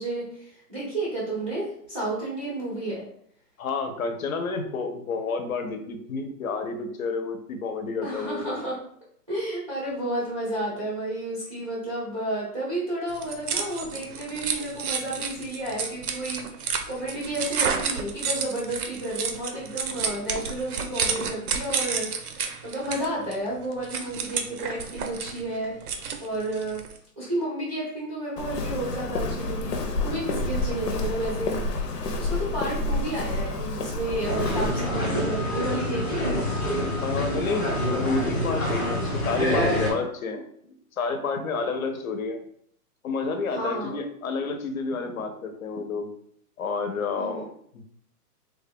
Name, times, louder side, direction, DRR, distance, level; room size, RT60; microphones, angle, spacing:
voice 1, 0.0-3.0 8.0-8.8 9.3-26.8 27.2-31.6 32.1-36.4 43.5-44.0 47.2-47.5, right 1 dB, 25° right, -7 dB, 0.4 m, -31 dB
voice 2, 3.6-8.6 37.0-40.4 41.0-42.4 43.0-46.1 46.6-47.8, left 4 dB, 60° left, 6 dB, 0.7 m, -30 dB
sound 1, 13.1-27.0, right 6 dB, 65° right, 0.6 m, -31 dB
Walk footsteps, 28.4-34.7, left 2 dB, 90° left, 0.8 m, -29 dB
sound 2, 34.2-39.9, left 1 dB, 15° left, 0.7 m, -26 dB
3.1 x 2.2 x 3.5 m, 0.65 s
hypercardioid pair, 165°, 47 cm